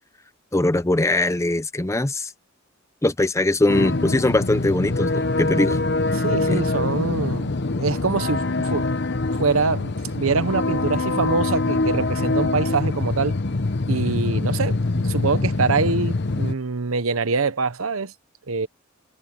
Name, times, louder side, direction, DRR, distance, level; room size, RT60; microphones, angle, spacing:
voice 1, 0.5-2.3 3.0-5.8 6.5-6.6, left 2 dB, 15° left, 0.7 m, -21 dB
sound 1, 3.7-16.5, left 2 dB, 55° left, 0.9 m, -24 dB
voice 2, 6.1-8.9 9.4-13.4 13.9-18.1 18.5-18.7, right 4 dB, 80° right, 1.0 m, -24 dB
head